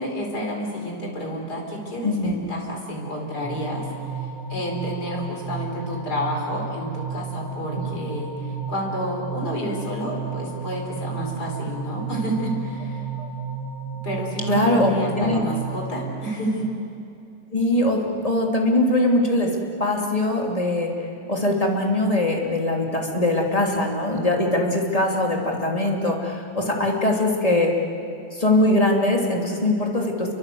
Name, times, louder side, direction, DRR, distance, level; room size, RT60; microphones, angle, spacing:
voice 1, 0.0-13.0 14.0-16.7, equal, 70° left, 0 dB, 5.0 m, -30 dB
voice 2, 2.0-2.3 7.8-8.0 13.2-13.3 14.5-15.4 17.5-20.9 21.3-27.7 28.3-30.3, left 1 dB, 20° left, 0 dB, 3.0 m, -22 dB
sound 1, 3.4-16.1, right 5 dB, 55° left, 4.4 m, -32 dB
29.0 x 23.5 x 7.9 m, 2.7 s
omnidirectional pair, 1.8 m